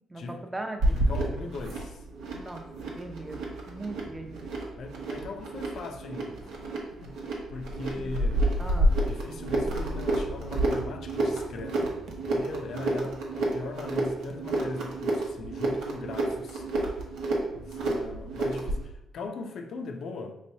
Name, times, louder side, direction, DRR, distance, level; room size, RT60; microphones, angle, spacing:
voice 1, 0.1-1.0 2.3-4.5 8.0-8.1 8.6-8.9, right 2 dB, 15° right, 0.6 m, -39 dB
sound 1, 0.8-18.8, right 1 dB, 90° right, 0.9 m, -30 dB
voice 2, 0.9-2.1 4.8-6.5 6.9-8.5 9.1-16.7 17.5-20.3, left 3 dB, 65° left, 0.5 m, -40 dB
sound 2, 9.7-10.1 10.5-10.9 11.4-12.2 12.8-13.2 14.0-14.8, right 3 dB, 60° right, 0.6 m, -46 dB
5.2 x 3.1 x 2.7 m
cardioid pair, 90°, 0 cm